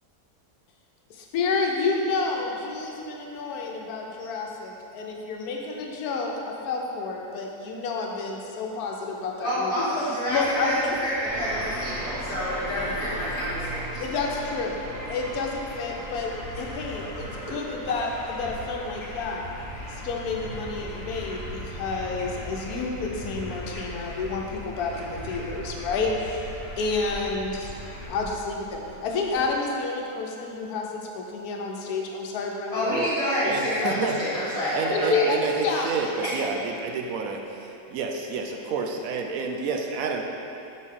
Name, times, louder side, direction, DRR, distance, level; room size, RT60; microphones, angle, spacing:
voice 1, 1.1-9.9 10.3-10.7 14.0-14.8 15.0-19.5 19.9-27.7 28.1-33.0 33.8-33.9 34.8-35.9, left 4 dB, 80° left, 0 dB, 1.1 m, -30 dB
voice 2, 9.4-14.0 32.7-35.2 36.2-36.3, equal, 25° left, -13 dB, 1.2 m, -28 dB
sound 1, 10.3-28.1, left 1 dB, 50° left, 1.0 m, -43 dB
sound 2, 11.2-29.5, right 1 dB, 45° right, 1.2 m, -38 dB
voice 3, 33.4-34.2 34.7-40.2, right 5 dB, 70° right, 2 dB, 1.0 m, -29 dB
6.4 x 4.3 x 3.6 m, 2.8 s
omnidirectional pair, 1.6 m